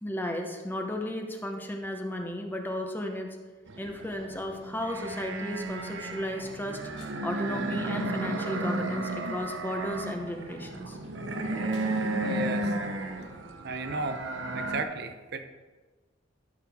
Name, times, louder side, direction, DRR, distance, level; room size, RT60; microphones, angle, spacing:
voice 1, 0.0-3.4 3.8-6.8 7.2-11.0, left 1 dB, 10° left, 3 dB, 0.9 m, -34 dB
sound 1, 3.7-14.8, right 2 dB, 85° right, 0.9 m, -33 dB
sound 2, 6.7-8.3 8.9-9.7 10.1-12.8, left 2 dB, 70° left, 2.3 m, -54 dB
voice 2, 12.2-12.8 13.6-14.3 14.5-15.4, right 3 dB, 60° right, 7 dB, 0.7 m, -34 dB
13.5 x 6.6 x 3.6 m, 1.3 s
head